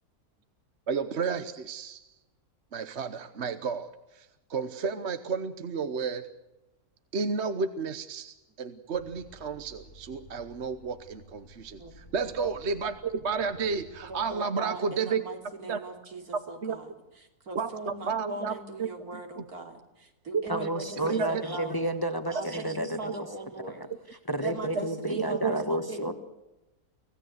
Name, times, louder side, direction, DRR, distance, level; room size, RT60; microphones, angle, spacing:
voice 1, 0.9-2.0 2.7-6.2 7.1-15.2 15.7-15.8 16.6-16.8 17.5-18.9 19.4-19.5 20.3-20.4 21.0-21.3 25.4-25.5, right 5 dB, 50° right, 10 dB, 1.2 m, -32 dB
sound 1, 8.9-14.4, equal, 90° left, 5.0 m, -53 dB
voice 2, 11.8-12.1 14.0-21.8 22.3-23.9 24.4-26.1, right 2 dB, 80° right, 4 dB, 3.5 m, -40 dB
voice 3, 20.5-23.1 23.8-23.9 24.3-26.1, right 1 dB, 15° left, 8 dB, 1.4 m, -31 dB
25.0 x 16.5 x 8.0 m, 1.0 s
omnidirectional pair, 1.6 m